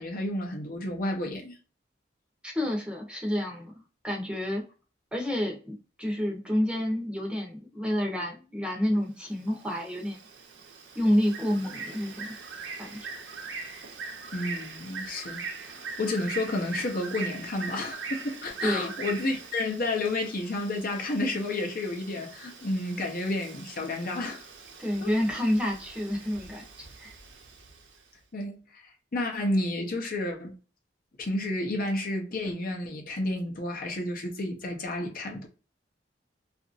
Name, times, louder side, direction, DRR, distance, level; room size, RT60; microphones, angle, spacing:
voice 1, 0.0-1.6 14.3-24.5 25.0-25.1 28.3-30.5 31.2-35.5, left 2 dB, 50° left, 0.7 m, -31 dB
voice 2, 2.4-4.6 5.1-10.2 10.9-12.3 12.8-13.0 18.6-18.9 24.8-27.1, equal, 5° right, 0.7 m, -29 dB
Bird, 9.2-28.0, right 4 dB, 90° right, 0.7 m, -42 dB
2.8 x 2.5 x 2.5 m
head